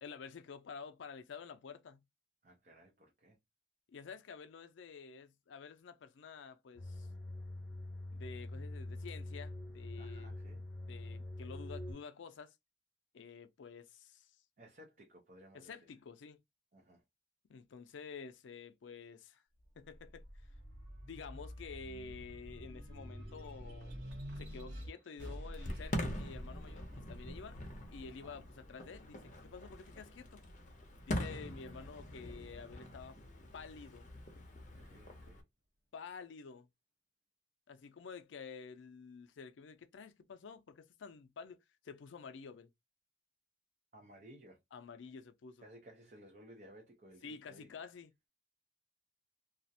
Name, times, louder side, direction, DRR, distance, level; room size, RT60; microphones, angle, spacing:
voice 1, 0.0-2.0 3.9-7.1 8.1-10.3 10.9-12.5 13.1-14.4 15.5-16.4 17.5-19.4 19.8-20.3 21.1-23.9 24.4-27.6 27.9-30.4 31.1-33.2 33.5-34.1 35.9-36.7 37.7-41.6 41.8-42.7 44.7-45.6 47.2-48.1, left 5 dB, 90° left, 0.4 m, -50 dB
voice 2, 2.4-3.4 10.0-10.7 14.6-15.9 16.7-17.0 28.1-28.4 34.6-35.4 43.9-44.6 45.6-47.7, right 1 dB, 45° right, 0.5 m, -58 dB
sound 1, 6.8-11.9, left 1 dB, ahead, 0.8 m, -44 dB
sound 2, 19.6-30.4 30.9-32.1, equal, 75° right, 0.8 m, -49 dB
Fireworks, 25.5-35.4, left 1 dB, 40° left, 0.6 m, -44 dB
2.4 x 2.0 x 2.6 m
head